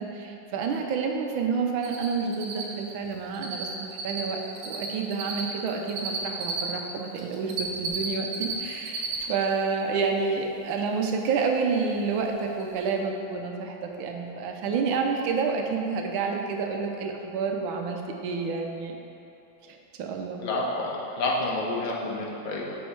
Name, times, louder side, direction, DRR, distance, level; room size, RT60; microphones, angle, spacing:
voice 1, 0.0-18.9 19.7-20.4, right 5 dB, 90° right, 2 dB, 1.5 m, -29 dB
Cricket, 1.8-2.1 2.3-6.6 7.1-8.5 8.8-9.2 9.5-9.6 12.1-12.2 12.6-12.7 12.9-13.0, right 6 dB, 70° right, 1.6 m, -32 dB
voice 2, 20.4-22.8, left 2 dB, 65° left, -3 dB, 1.4 m, -29 dB
6.3 x 5.6 x 4.6 m, 2.9 s
omnidirectional pair, 2.1 m